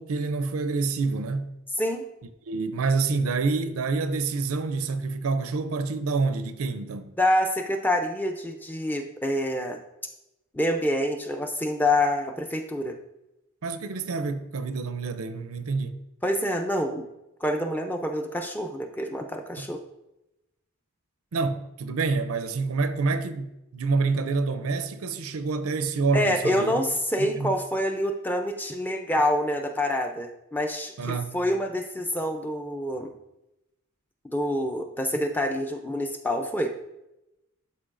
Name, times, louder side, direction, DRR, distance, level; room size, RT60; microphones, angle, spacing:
voice 1, 0.0-1.5 2.5-7.1 13.6-16.0 19.6-19.7 21.3-26.7 27.2-27.5 31.0-31.4, right 4 dB, 80° right, 0.5 m, -27 dB
voice 2, 1.8-2.1 7.2-9.8 10.5-13.0 16.2-17.1 17.4-19.8 26.1-33.1 34.3-36.7, left 1 dB, 10° left, 0.4 m, -27 dB
12.0 x 4.5 x 2.5 m
head